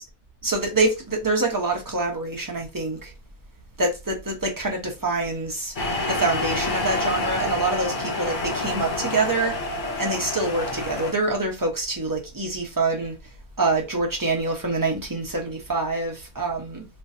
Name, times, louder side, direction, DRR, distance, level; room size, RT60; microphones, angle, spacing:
voice 1, 0.4-3.1 3.8-5.7 6.1-9.6 10.0-13.1 13.6-16.8, right 2 dB, 20° right, 1.0 m, -25 dB
sound 1, 5.8-11.1, left 2 dB, 45° left, 1.0 m, -28 dB
3.3 x 3.0 x 2.7 m
omnidirectional pair, 1.2 m